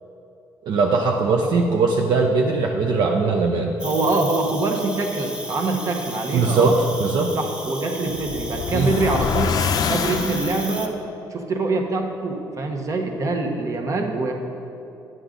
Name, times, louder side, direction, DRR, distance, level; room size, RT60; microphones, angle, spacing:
voice 1, 0.6-3.7 6.3-6.7 7.0-7.3 8.7-8.9, right 4 dB, 70° right, 1 dB, 0.7 m, -20 dB
Cricket, 3.8-10.9, right 1 dB, 10° right, 0.8 m, -34 dB
voice 2, 3.8-6.7 7.3-11.0 11.3-14.3, right 3 dB, 45° right, 2 dB, 1.1 m, -24 dB
sound 1, 8.1-10.9, left 6 dB, 55° left, 0.4 m, -25 dB
10.5 x 7.8 x 3.9 m, 2.8 s
cardioid pair, 105°, 8 cm